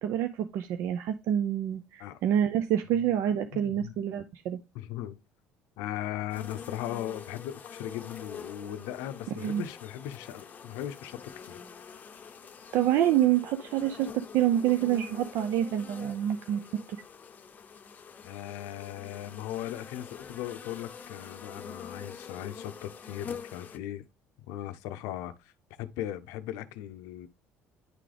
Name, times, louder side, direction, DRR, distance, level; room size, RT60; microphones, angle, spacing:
voice 1, 0.0-4.6 9.4-9.6 12.7-16.6 16.9-17.0, right 11 dB, 75° right, 0.5 m, -27 dB
voice 2, 3.5-3.9 4.7-5.2 5.8-11.6 18.2-24.0 24.5-25.5 25.8-27.3, left 12 dB, 85° left, 0.5 m, -38 dB
sound 1, 6.3-23.8, left 6 dB, 35° left, 0.6 m, -46 dB
9.6 x 3.8 x 3.3 m
cardioid pair, 95°, 5 cm